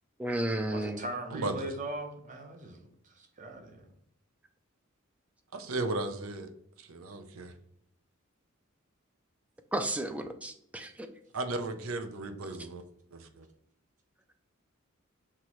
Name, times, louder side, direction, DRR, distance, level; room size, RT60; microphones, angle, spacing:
voice 1, 0.2-1.0 9.7-11.1, right 1 dB, 5° right, 6 dB, 0.3 m, -33 dB
voice 2, 0.7-3.9, right 1 dB, 35° right, 3 dB, 0.8 m, -40 dB
voice 3, 1.3-1.7 5.5-6.5 6.8-7.5 11.3-12.8 13.1-13.5, right 2 dB, 75° right, 8 dB, 0.6 m, -35 dB
5.8 x 3.0 x 3.0 m, 0.70 s
head